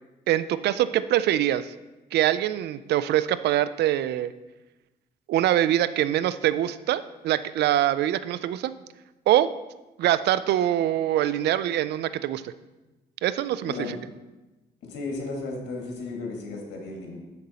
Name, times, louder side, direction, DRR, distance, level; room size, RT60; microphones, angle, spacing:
voice 1, 0.3-1.7 2.1-4.3 5.3-8.7 9.3-9.5 10.0-12.5 13.2-14.0, right 12 dB, 75° right, 15 dB, 0.4 m, -24 dB
voice 2, 14.9-17.2, left 3 dB, 85° left, 0 dB, 1.8 m, -34 dB
6.8 x 6.5 x 4.1 m, 1.1 s
cardioid pair, 80°, 17 cm